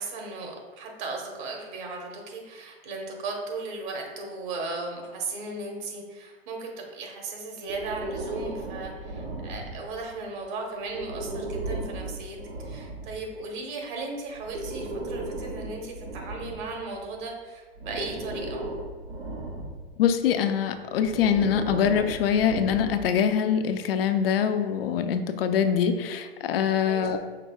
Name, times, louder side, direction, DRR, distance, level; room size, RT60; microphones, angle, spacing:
voice 1, 0.0-18.6 26.8-27.1, right 3 dB, 50° right, 1 dB, 1.2 m, -36 dB
Breathing, 7.7-10.1 10.9-13.2 14.3-17.2 17.8-20.0 20.9-23.2, right 2 dB, 70° right, 1.1 m, -36 dB
voice 2, 20.0-27.3, left 8 dB, 65° left, 8 dB, 0.5 m, -24 dB
5.7 x 3.8 x 2.3 m, 1.4 s
hypercardioid pair, 110°, 32 cm